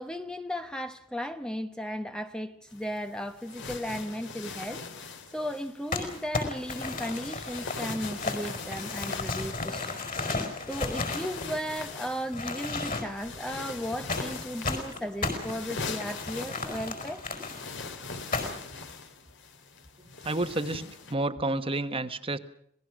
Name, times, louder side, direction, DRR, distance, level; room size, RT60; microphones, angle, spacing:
voice 1, 0.0-4.8 5.3-10.0 10.7-17.2, equal, 5° left, 0.9 m, -35 dB
sound 1, 2.7-21.1, left 4 dB, 60° left, 2.5 m, -41 dB
Crumpling crinkling, 5.9-11.9 12.3-13.3 14.1-17.6 18.3-18.7, left 3 dB, 40° left, 5.0 m, -34 dB
voice 2, 20.2-20.8 21.1-22.4, right 2 dB, 25° right, 1.2 m, -29 dB
27.0 x 18.5 x 6.3 m
head